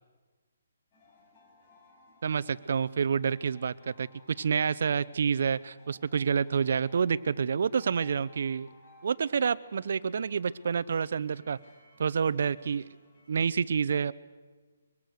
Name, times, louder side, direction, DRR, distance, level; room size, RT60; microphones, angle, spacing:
sound 1, 0.9-13.6, left 2 dB, 25° left, 5.7 m, -61 dB
voice 1, 2.2-8.7 9.0-11.6 12.0-12.8 13.3-14.1, right 6 dB, 55° right, 16 dB, 0.7 m, -28 dB
23.5 x 22.0 x 6.5 m, 1.3 s
hypercardioid pair, 170°, 0 cm